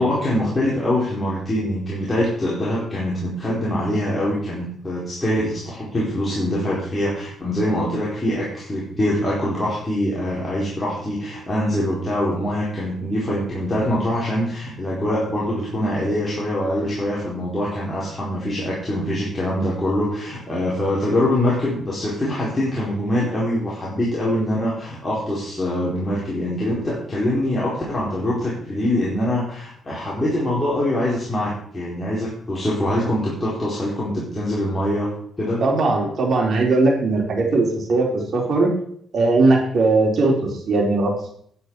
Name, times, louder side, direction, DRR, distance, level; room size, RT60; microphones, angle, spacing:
voice 1, 0.0-35.1 35.4-35.6, left 1 dB, 20° left, -7 dB, 4.5 m, -24 dB
voice 2, 35.6-38.1 38.3-38.7 39.1-41.3, right 3 dB, 50° right, -1 dB, 4.4 m, -19 dB
10.5 x 10.0 x 4.9 m, 0.64 s
cardioid pair, 90°, 0 cm